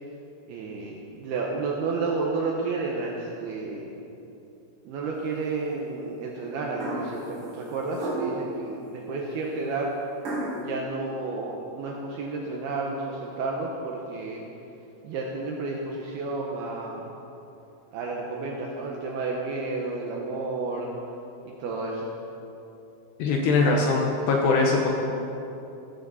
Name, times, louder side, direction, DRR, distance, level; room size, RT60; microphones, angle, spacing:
voice 1, 0.5-4.0 4.9-9.9 10.5-14.4 15.0-17.1 17.9-20.9 21.4-22.1, right 3 dB, 75° right, -2 dB, 2.4 m, -31 dB
sound 1, 6.8-7.2 7.9-8.5 10.2-10.6, right 2 dB, 45° right, 4.7 m, -31 dB
voice 2, 23.2-24.9, left 3 dB, 75° left, 1 dB, 2.6 m, -22 dB
15.0 x 13.0 x 4.1 m, 2.9 s
omnidirectional pair, 5.7 m